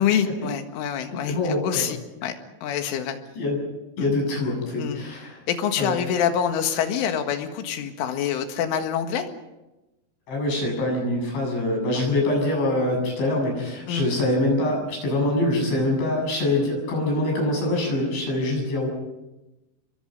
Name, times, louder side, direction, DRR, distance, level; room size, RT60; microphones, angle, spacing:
voice 1, 0.0-2.3 2.6-3.2 4.0-4.1 4.8-5.1 5.5-9.3 11.9-12.0 13.9-14.1, left 8 dB, 85° left, 6 dB, 4.2 m, -26 dB
voice 2, 1.3-1.8 3.4-3.6 4.0-5.4 5.8-6.0 10.3-18.9, left 1 dB, 70° left, 1 dB, 9.7 m, -24 dB
29.0 x 23.0 x 5.4 m, 1.0 s
omnidirectional pair, 5.5 m